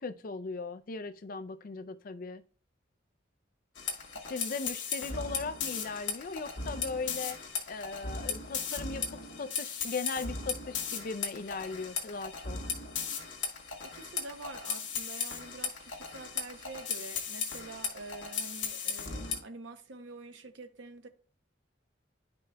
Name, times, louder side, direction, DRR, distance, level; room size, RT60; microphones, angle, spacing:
voice 1, 0.0-2.4 4.3-12.6, left 4 dB, 50° left, 0.4 m, -38 dB
sound 1, 3.7-19.4, left 5 dB, 85° left, 1.5 m, -37 dB
voice 2, 13.8-21.1, right 3 dB, 80° right, 0.8 m, -46 dB
10.5 x 5.3 x 2.2 m
head